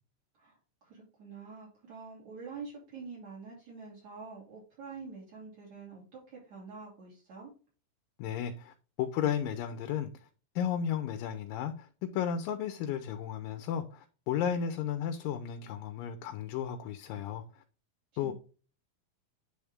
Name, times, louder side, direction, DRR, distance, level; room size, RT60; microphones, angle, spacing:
voice 1, 0.4-7.5 18.2-18.3, right 4 dB, 50° right, 4.0 m, -46 dB
voice 2, 8.2-10.1 10.6-11.9 12.1-17.6 18.2-18.3, left 9 dB, 80° left, 2.5 m, -34 dB
10.0 x 3.6 x 3.6 m
omnidirectional pair, 4.0 m